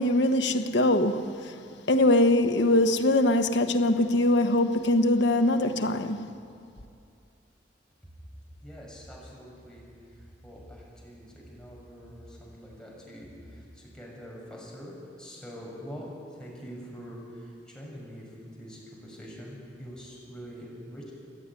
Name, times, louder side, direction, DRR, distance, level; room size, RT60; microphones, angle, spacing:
voice 1, 0.0-1.5 1.9-6.3, left 1 dB, 70° left, 1.3 m, -22 dB
voice 2, 8.6-9.8 10.1-16.1 16.4-18.2 18.6-21.1, equal, 5° left, 6.5 m, -44 dB
27.5 x 11.0 x 9.9 m
head